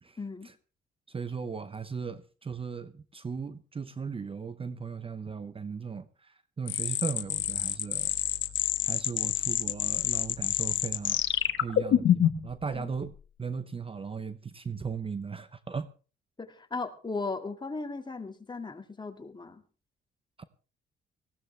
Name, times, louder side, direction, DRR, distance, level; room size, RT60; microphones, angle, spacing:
voice 1, 0.2-0.5 12.7-12.9 16.4-19.6, left 3 dB, 20° left, 2.0 m, -37 dB
voice 2, 1.1-8.1 8.9-11.2 11.6-15.9 20.4-20.5, right 5 dB, 25° right, 0.8 m, -37 dB
sound 1, 6.7-12.5, left 11 dB, 70° left, 1.2 m, -27 dB
19.0 x 15.5 x 3.3 m
cardioid pair, 90°, 20 cm